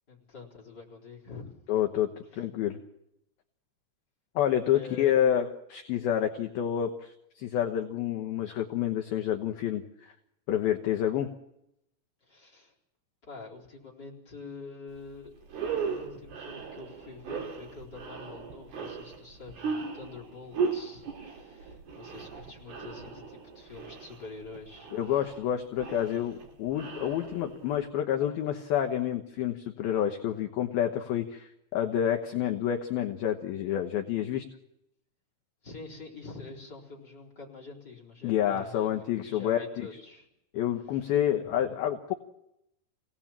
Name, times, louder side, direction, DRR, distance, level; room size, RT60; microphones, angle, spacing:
voice 1, 0.1-1.5 2.3-2.4 4.7-5.1 12.2-12.7 13.2-15.3 15.8-25.4 35.6-40.3 40.9-41.7, left 4 dB, 20° left, 1 dB, 4.3 m, -46 dB
voice 2, 1.7-2.8 4.4-10.1 10.5-11.3 24.9-34.5 38.2-39.9 40.5-42.1, left 10 dB, 70° left, 4 dB, 2.5 m, -29 dB
sound 1, 15.0-15.1 15.4-27.8, right 5 dB, 60° right, 4.9 m, -37 dB
27.5 x 18.0 x 7.4 m, 0.84 s
omnidirectional pair, 5.5 m